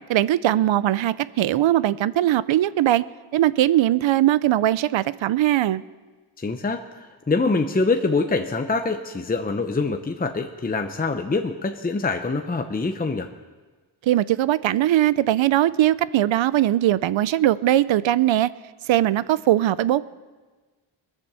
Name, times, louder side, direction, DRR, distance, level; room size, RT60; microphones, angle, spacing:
voice 1, 0.1-3.0 3.3-5.8 14.1-18.5 18.9-20.1, right 13 dB, 80° right, 17 dB, 0.6 m, -20 dB
voice 2, 6.4-13.3, left 3 dB, 20° left, 5 dB, 0.8 m, -25 dB
22.0 x 7.4 x 6.8 m, 1.3 s
wide cardioid pair, 115°, 46 cm